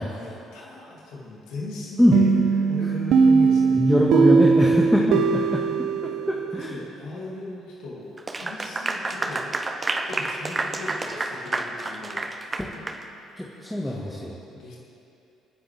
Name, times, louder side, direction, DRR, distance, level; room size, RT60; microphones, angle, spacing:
voice 1, 0.0-2.3 2.6-3.9 4.6-5.1 5.4-5.6 6.0-9.5 10.1-12.6 13.8-14.2 14.5-14.8, left 2 dB, 65° left, -5 dB, 2.8 m, -38 dB
sound 1, 2.1-6.8, right 5 dB, 60° right, 0.7 m, -20 dB
voice 2, 3.7-5.2 5.5-5.9 6.3-6.8 12.6-12.7 13.4-14.3, equal, 5° left, -3 dB, 1.8 m, -22 dB
Clapping / Applause, 8.2-13.0, right 2 dB, 25° right, 1.2 m, -29 dB
29.0 x 9.9 x 3.5 m, 2.7 s
figure-of-eight pair, 50°, 0 cm